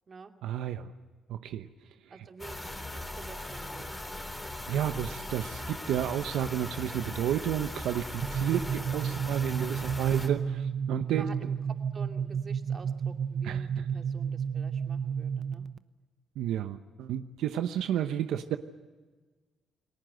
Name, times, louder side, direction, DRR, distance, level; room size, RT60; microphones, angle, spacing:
voice 1, 0.4-0.9 1.3-1.7 2.1-2.2 4.7-11.3 13.4-14.0 16.4-18.6, right 10 dB, 85° right, 8 dB, 0.9 m, -31 dB
voice 2, 2.1-4.0 8.5-8.8 11.1-15.7, right 4 dB, 40° right, 4 dB, 2.6 m, -49 dB
sound 1, 2.4-10.3, left 1 dB, 15° left, 3.9 m, -39 dB
sound 2, 8.2-15.8, right 7 dB, 60° right, 0.8 m, -32 dB
29.5 x 19.5 x 7.8 m, 1.3 s
cardioid pair, 90°, 0 cm